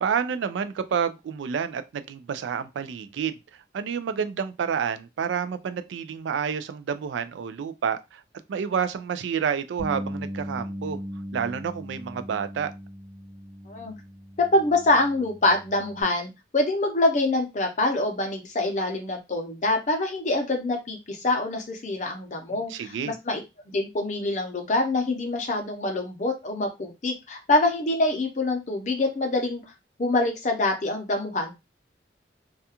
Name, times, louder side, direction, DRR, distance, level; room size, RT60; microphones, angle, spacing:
voice 1, 0.0-3.4 3.7-8.2 8.5-11.0 11.3-12.7 22.5-23.1, right 7 dB, 85° right, 0.3 m, -29 dB
Bass guitar, 9.8-16.0, equal, 70° right, 0.8 m, -38 dB
voice 2, 14.4-23.4 23.7-29.6 30.0-31.5, left 2 dB, 40° left, 0.6 m, -25 dB
2.3 x 2.2 x 2.8 m
head